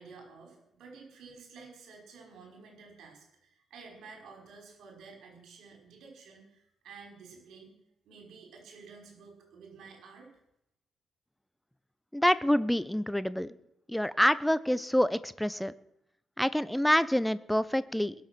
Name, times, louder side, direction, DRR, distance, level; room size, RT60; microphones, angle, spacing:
voice 1, 0.0-7.8 8.0-10.3, right 4 dB, 65° right, 0 dB, 5.5 m, -51 dB
voice 2, 12.1-13.5 13.9-15.7 16.4-18.1, equal, 5° left, 16 dB, 0.9 m, -27 dB
22.0 x 7.5 x 6.3 m, 0.80 s
hypercardioid pair, 40°, 0 cm